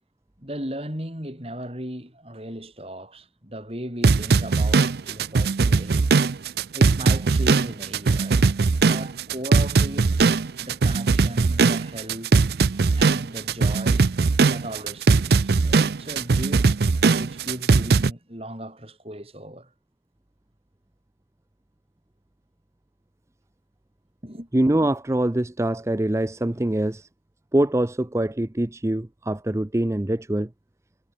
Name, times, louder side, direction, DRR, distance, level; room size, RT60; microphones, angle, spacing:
voice 1, 0.4-6.1 6.7-8.4 8.8-10.1 10.6-12.4 13.0-14.1 14.4-16.7 17.2-19.7 24.2-24.5, right 1 dB, 35° right, 7.5 m, -37 dB
sound 1, 4.0-18.1, right 4 dB, 65° right, 0.5 m, -20 dB
voice 2, 24.5-27.1 27.5-30.5, right 1 dB, 15° right, 0.5 m, -24 dB
head